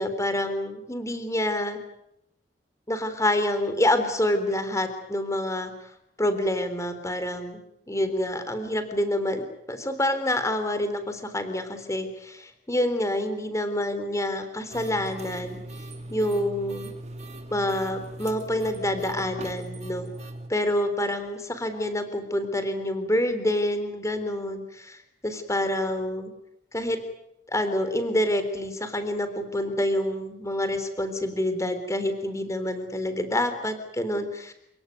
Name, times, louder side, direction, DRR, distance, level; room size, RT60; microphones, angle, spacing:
voice 1, 0.0-1.8 2.9-5.7 6.2-15.6 16.1-16.9 17.5-20.1 20.5-26.3 26.7-27.0 27.5-34.5, left 1 dB, 15° left, 9 dB, 3.6 m, -27 dB
sound 1, 14.7-20.5, right 1 dB, 40° right, 2.6 m, -39 dB
29.0 x 17.5 x 9.6 m, 0.82 s
head